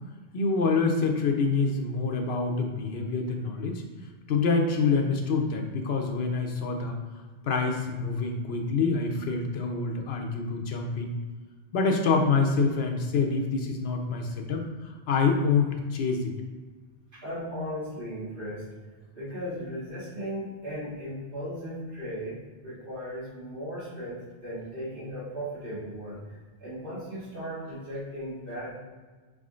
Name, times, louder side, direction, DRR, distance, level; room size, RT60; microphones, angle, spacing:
voice 1, 0.3-3.8 4.3-7.0 7.4-11.2 11.7-14.6 15.1-16.3, left 4 dB, 70° left, 3 dB, 0.9 m, -26 dB
voice 2, 17.1-18.7 19.2-28.7, equal, 55° right, -10 dB, 1.8 m, -37 dB
4.8 x 3.7 x 2.4 m, 1.3 s
omnidirectional pair, 1.1 m